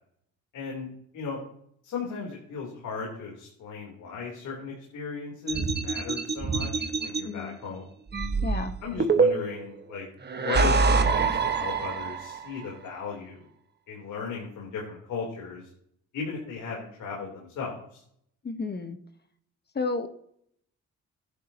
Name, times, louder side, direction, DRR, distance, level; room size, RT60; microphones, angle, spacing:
voice 1, 0.5-0.9 1.1-1.4 1.8-7.9 8.8-10.1 10.3-13.5 13.9-15.7 16.1-18.0, left 5 dB, 75° left, -2 dB, 3.4 m, -36 dB
sound 1, 5.5-7.2 8.1-9.7 10.3-12.4, right 4 dB, 35° right, 1.4 m, -25 dB
voice 2, 7.2-7.6 8.4-8.7 18.4-19.0 19.7-20.1, left 3 dB, 35° left, 9 dB, 1.2 m, -31 dB
15.0 x 11.0 x 2.9 m, 0.69 s
cardioid pair, 90°, 30 cm